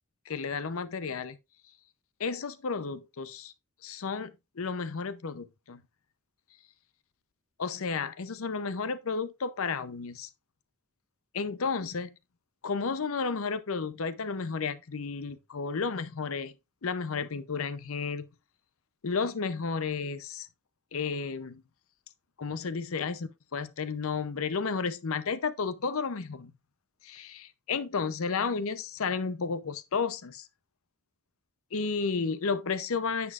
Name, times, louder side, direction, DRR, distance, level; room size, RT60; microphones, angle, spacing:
voice 1, 0.3-1.4 2.2-3.5 3.8-5.8 7.6-10.3 11.3-12.1 12.6-16.5 16.8-18.3 19.0-20.5 20.9-21.6 22.4-26.5 27.0-30.5 31.7-33.3, left 5 dB, 70° left, 0.6 m, -32 dB
9.8 x 7.1 x 2.4 m
head